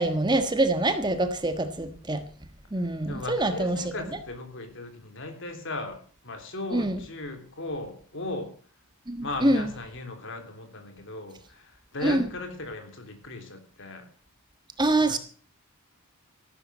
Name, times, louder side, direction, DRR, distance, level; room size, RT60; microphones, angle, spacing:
voice 1, 0.0-2.2 2.7-3.8 6.7-7.0 9.1-9.7 12.0-12.2 14.8-15.2, right 2 dB, 20° right, 9 dB, 1.4 m, -25 dB
voice 2, 3.1-8.5 9.2-14.1 15.0-15.2, left 2 dB, 55° left, 6 dB, 3.4 m, -37 dB
14.5 x 12.0 x 6.3 m, 0.43 s
head